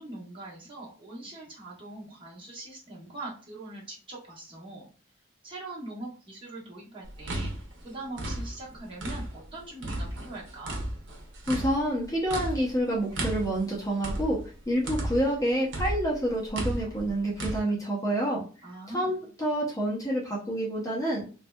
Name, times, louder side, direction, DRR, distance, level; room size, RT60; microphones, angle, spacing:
voice 1, 0.0-4.9 5.4-7.5 7.8-10.7 18.6-19.3, right 2 dB, 25° right, -6 dB, 1.0 m, -42 dB
sound 1, 7.0-9.5 9.8-15.4 15.7-17.6, right 1 dB, 60° right, 0.8 m, -34 dB
voice 2, 11.5-14.4 14.7-18.4 18.9-21.2, right 1 dB, 15° left, -4 dB, 0.7 m, -28 dB
3.2 x 2.7 x 2.2 m, 0.37 s
head